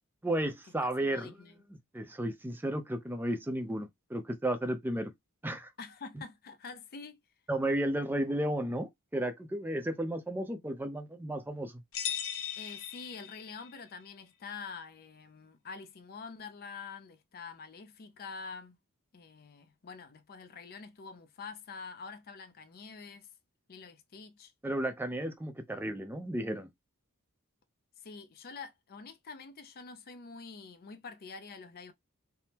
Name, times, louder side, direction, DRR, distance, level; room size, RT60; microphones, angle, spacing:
voice 1, 0.2-1.3 1.9-5.1 5.4-5.7 7.5-11.8 24.6-26.7, right 1 dB, 10° right, 0.5 m, -33 dB
voice 2, 1.1-1.6 5.8-7.2 12.6-18.8 19.1-23.3 23.7-24.5 28.0-31.9, left 5 dB, 45° left, 0.5 m, -46 dB
sound 1, 11.9-13.8, left 9 dB, 80° left, 0.7 m, -38 dB
3.4 x 2.0 x 2.8 m
head